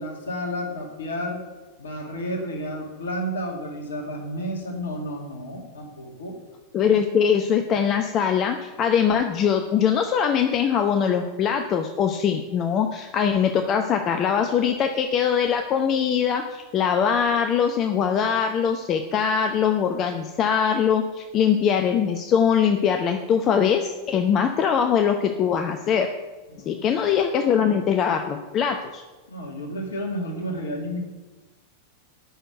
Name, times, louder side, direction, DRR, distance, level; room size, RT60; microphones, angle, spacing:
voice 1, 0.0-1.4 1.8-6.4 26.5-26.9 29.3-31.0, equal, 65° left, 1 dB, 2.1 m, -31 dB
voice 2, 6.7-26.1 26.7-29.0, left 7 dB, 30° left, 6 dB, 0.8 m, -22 dB
8.9 x 6.6 x 7.9 m, 1.2 s
figure-of-eight pair, 90°, 0 cm